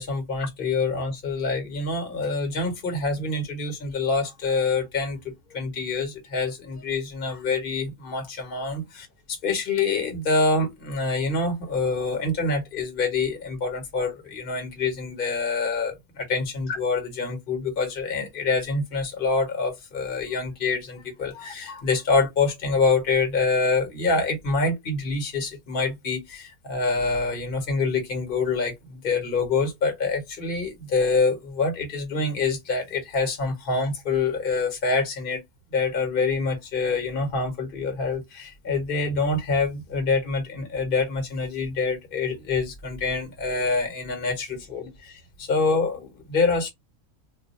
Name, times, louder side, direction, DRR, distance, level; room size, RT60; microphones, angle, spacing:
voice 1, 0.0-5.2 5.5-35.4 35.7-46.7, left 4 dB, 45° left, 1.2 m, -26 dB
2.4 x 2.3 x 4.0 m
omnidirectional pair, 1.4 m